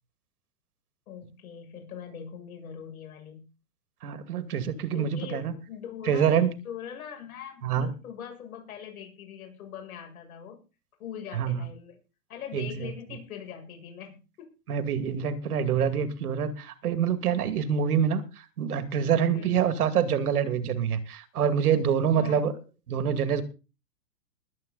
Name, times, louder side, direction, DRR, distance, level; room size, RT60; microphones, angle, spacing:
voice 1, 1.1-3.5 4.9-10.6 11.0-12.0 12.3-14.5 19.3-19.6 22.1-22.4, left 8 dB, 60° left, 3 dB, 7.1 m, -41 dB
voice 2, 4.0-5.5 6.1-6.5 7.6-7.9 11.3-11.6 12.5-12.9 14.7-18.2 18.6-22.5 22.9-23.4, right 8 dB, 65° right, 11 dB, 2.3 m, -26 dB
21.0 x 9.0 x 4.0 m, 0.31 s
hypercardioid pair, 155°, 48 cm